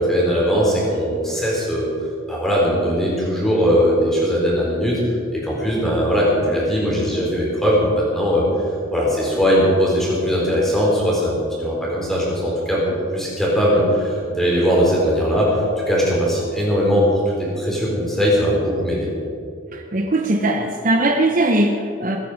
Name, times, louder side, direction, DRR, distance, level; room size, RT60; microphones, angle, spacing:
voice 1, 0.0-1.9 2.3-5.0 5.3-8.5 8.9-12.8 13.1-19.1, equal, ahead, -5 dB, 4.4 m, -19 dB
voice 2, 19.7-22.2, right 2 dB, 40° right, 4 dB, 0.8 m, -20 dB
21.0 x 9.9 x 5.2 m, 2.4 s
head